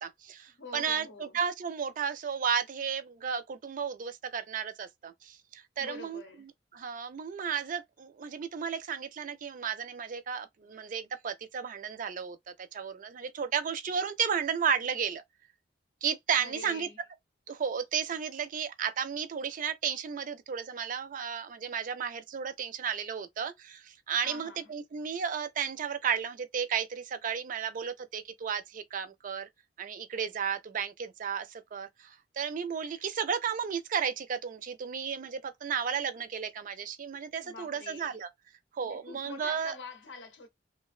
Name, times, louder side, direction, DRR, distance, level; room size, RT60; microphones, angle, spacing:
voice 1, 0.0-15.2 16.0-16.9 17.5-29.5 29.8-38.3 38.7-39.8, right 7 dB, 50° right, 0.4 m, -33 dB
voice 2, 0.6-1.4 5.8-6.5 16.4-17.0 24.2-24.7 37.4-38.2 38.8-40.5, left 3 dB, 85° left, 0.6 m, -46 dB
2.4 x 2.2 x 2.3 m
head